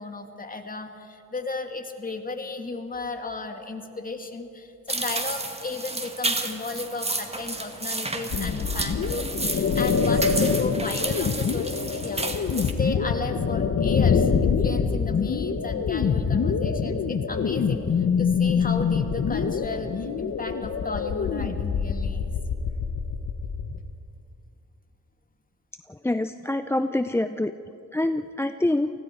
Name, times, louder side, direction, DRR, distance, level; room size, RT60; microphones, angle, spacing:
voice 1, 0.0-12.2 12.5-22.3, left 3 dB, 25° left, 5 dB, 2.4 m, -34 dB
sound 1, 4.9-12.7, right 2 dB, 20° right, 2.1 m, -31 dB
sound 2, 8.3-23.8, left 6 dB, 50° left, 1.4 m, -25 dB
voice 2, 25.9-27.5 27.9-28.9, left 1 dB, 5° left, 10 dB, 0.5 m, -25 dB
29.0 x 19.5 x 4.6 m, 2.7 s
cardioid pair, 70°, 34 cm